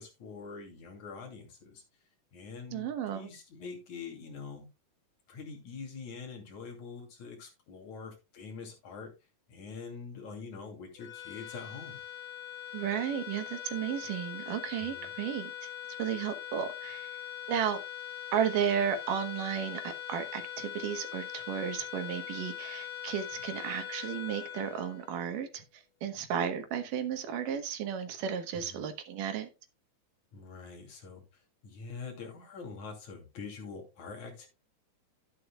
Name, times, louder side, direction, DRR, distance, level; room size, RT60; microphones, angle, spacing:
voice 1, 0.0-1.8 2.3-4.7 5.3-9.1 9.5-12.0 14.8-15.1 28.5-28.8 30.3-31.2 31.6-34.5, left 5 dB, 65° left, 3.9 m, -44 dB
voice 2, 2.7-3.3 12.7-15.7 16.0-17.1 17.5-17.8 18.3-29.5, right 8 dB, 80° right, 2.8 m, -33 dB
sound 1, 11.0-25.5, left 11 dB, 80° left, 3.3 m, -42 dB
12.0 x 9.9 x 2.3 m
omnidirectional pair, 3.8 m